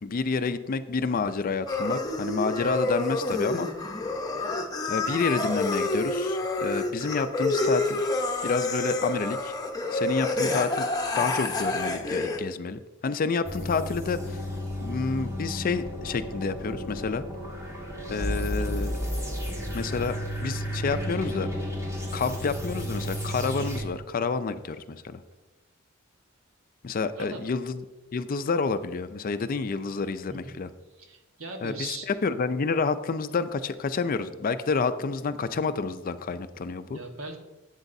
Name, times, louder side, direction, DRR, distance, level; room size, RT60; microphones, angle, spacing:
voice 1, 0.0-3.7 4.9-8.1 8.4-9.5 9.9-10.9 11.2-14.4 14.8-17.2 18.1-18.9 19.7-20.2 20.4-21.5 22.1-25.2 26.8-27.8 28.1-30.7 31.6-37.0, left 4 dB, 45° left, 11 dB, 0.4 m, -29 dB
sound 1, 1.7-12.4, left 2 dB, 20° left, 0.9 m, -28 dB
sound 2, 13.4-23.8, equal, 15° right, 1.6 m, -33 dB
voice 2, 18.5-18.9 27.1-27.5 30.3-30.6 31.0-32.1 36.9-37.4, right 2 dB, 70° right, 3 dB, 1.3 m, -40 dB
12.0 x 8.1 x 2.6 m, 1.1 s
head